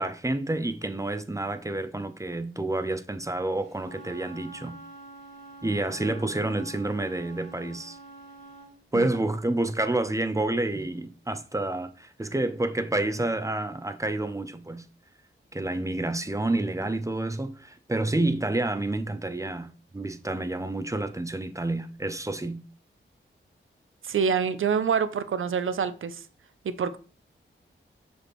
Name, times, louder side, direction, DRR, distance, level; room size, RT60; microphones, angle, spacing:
voice 1, 0.0-4.7 5.6-8.0 8.9-14.8 15.5-22.6, right 2 dB, 15° right, 0.5 m, -29 dB
Wind instrument woodwind instrument, 3.7-8.7, right 2 dB, 55° right, 2.5 m, -47 dB
voice 2, 24.0-26.2 26.6-27.0, right 6 dB, 70° right, 0.5 m, -26 dB
6.2 x 5.2 x 3.0 m
wide cardioid pair, 70°, 21 cm